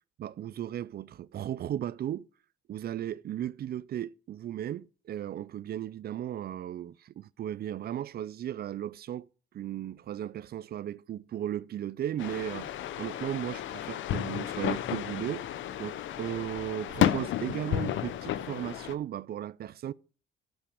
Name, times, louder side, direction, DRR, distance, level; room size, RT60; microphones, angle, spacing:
voice 1, 0.2-2.3 2.7-9.3 9.5-15.5 15.8-19.9, right 11 dB, 50° right, 0.4 m, -36 dB
sound 1, 12.2-18.9, left 11 dB, 75° left, 0.7 m, -32 dB
12.0 x 5.7 x 4.9 m
cardioid pair, 90°, 20 cm